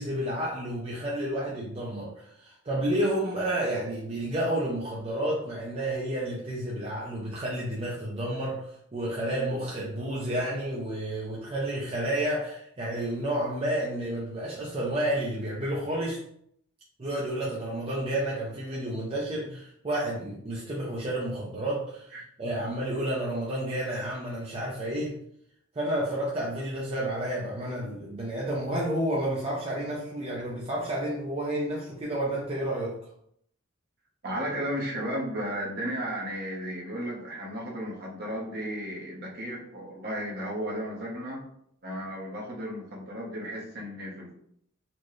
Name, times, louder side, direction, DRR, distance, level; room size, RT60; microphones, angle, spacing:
voice 1, 0.0-16.2 17.0-25.2 25.7-33.0, right 1 dB, 30° right, -5 dB, 0.5 m, -30 dB
voice 2, 34.2-41.4 41.8-44.3, equal, 50° right, -2 dB, 0.9 m, -34 dB
4.2 x 2.2 x 3.1 m, 0.70 s
head